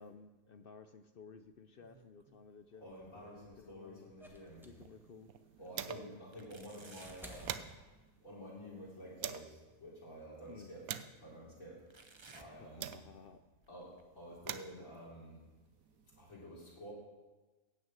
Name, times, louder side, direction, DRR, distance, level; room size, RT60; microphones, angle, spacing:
voice 1, 0.0-2.9 3.4-4.1 4.6-5.3 10.5-10.7 12.4-13.4, left 5 dB, 55° left, 9 dB, 0.7 m, -55 dB
sound 1, 1.5-2.5 2.8-4.7 5.2-5.3 6.3-7.7 9.4-9.5 10.4-10.5 11.9-13.3 13.6-14.0 14.7-14.8 15.6-15.7, right 3 dB, 25° right, 0.7 m, -60 dB
voice 2, 2.8-4.7 5.6-7.6 8.2-10.8 11.1-11.8 12.3-13.0 13.7-13.9 14.2-15.4 16.2-16.9, equal, 70° left, -7 dB, 4.1 m, -50 dB
sound 2, 4.2-8.5 9.7-9.8, right 1 dB, ahead, 1.3 m, -56 dB
sound 3, 4.5-6.3 6.6-6.7 7.0-9.6 10.2-13.4 14.1-16.3, right 10 dB, 85° right, 1.1 m, -47 dB
14.5 x 6.3 x 8.8 m, 1.2 s
omnidirectional pair, 1.5 m